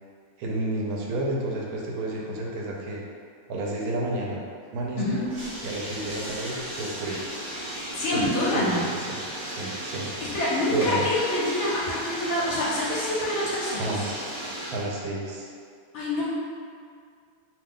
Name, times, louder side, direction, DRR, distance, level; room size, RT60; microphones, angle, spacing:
voice 1, 0.4-3.0 3.5-4.4 4.7-5.2 5.6-7.3 8.1-8.2 8.5-9.2 9.5-10.2 10.7-11.1 13.7-14.3 14.7-15.5, right 2 dB, 75° right, -2 dB, 1.0 m, -31 dB
Bathtub (filling or washing), 5.1-14.9, right 1 dB, 45° right, 1.0 m, -35 dB
voice 2, 7.9-8.8 10.2-13.9 15.9-16.2, left 1 dB, 65° left, -6 dB, 0.7 m, -26 dB
2.7 x 2.2 x 3.5 m, 2.2 s
omnidirectional pair, 1.7 m